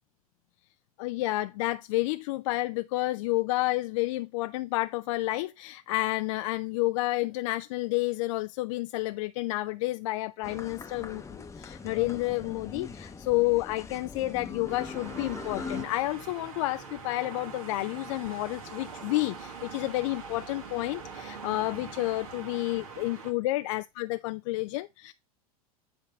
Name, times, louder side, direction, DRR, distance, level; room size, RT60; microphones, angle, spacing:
voice 1, 1.0-25.1, left 19 dB, 55° left, 0.4 m, -30 dB
sound 1, 10.4-15.8, left 5 dB, 15° left, 0.8 m, -41 dB
sound 2, 14.7-23.3, right 5 dB, 70° right, 1.7 m, -43 dB
9.4 x 3.8 x 4.3 m
figure-of-eight pair, 80°, 19 cm